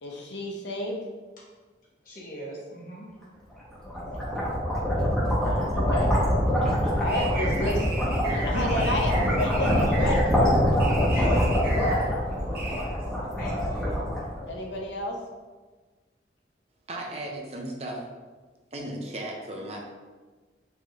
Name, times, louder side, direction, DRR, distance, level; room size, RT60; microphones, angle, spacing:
voice 1, 0.0-1.0 4.0-4.3 4.7-6.1 6.9-7.9 8.3-11.1 11.7-12.2 14.5-15.2, left 1 dB, 75° left, 1 dB, 0.7 m, -31 dB
voice 2, 2.0-3.1 11.1-11.4 12.7-13.0 13.4-14.0, equal, 50° left, -5 dB, 1.2 m, -40 dB
sound 1, 3.6-14.8, equal, 5° left, 1.1 m, -25 dB
sound 2, 6.8-12.8, right 2 dB, 55° right, 1.0 m, -37 dB
voice 3, 16.9-18.0 18.7-19.8, right 1 dB, 35° right, 0 dB, 0.6 m, -35 dB
4.6 x 2.7 x 3.1 m, 1.4 s
head